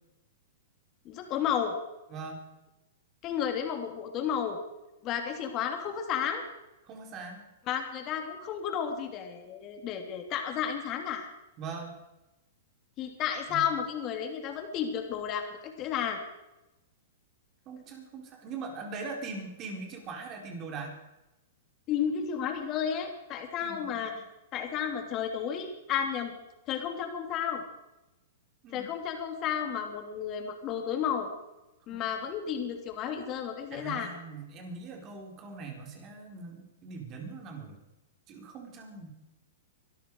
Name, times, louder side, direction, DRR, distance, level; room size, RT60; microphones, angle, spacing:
voice 1, 1.0-1.7 3.2-4.6 5.0-6.4 7.7-11.3 13.0-16.2 21.9-24.1 24.5-26.3 26.7-27.6 28.7-31.3 31.9-34.1, left 8 dB, 35° left, 4 dB, 3.2 m, -32 dB
voice 2, 2.1-2.5 6.8-7.4 11.6-11.9 13.5-13.7 17.7-21.0 23.6-23.9 28.6-28.9 31.9-32.0 33.7-37.8 38.3-39.1, right 4 dB, 35° right, 2 dB, 4.4 m, -41 dB
23.5 x 12.5 x 4.9 m, 0.97 s
hypercardioid pair, 125°, 0 cm